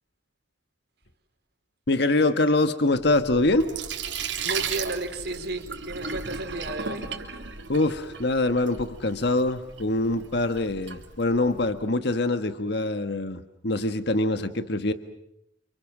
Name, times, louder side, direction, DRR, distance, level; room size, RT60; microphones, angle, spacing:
voice 1, 1.9-3.7 7.7-14.9, left 2 dB, 60° left, 9 dB, 1.5 m, -24 dB
Sink (filling or washing), 2.9-11.7, right 6 dB, 75° right, 3.5 m, -36 dB
voice 2, 4.4-7.0, right 2 dB, 60° right, 6 dB, 4.2 m, -33 dB
30.0 x 28.5 x 6.2 m, 0.81 s
head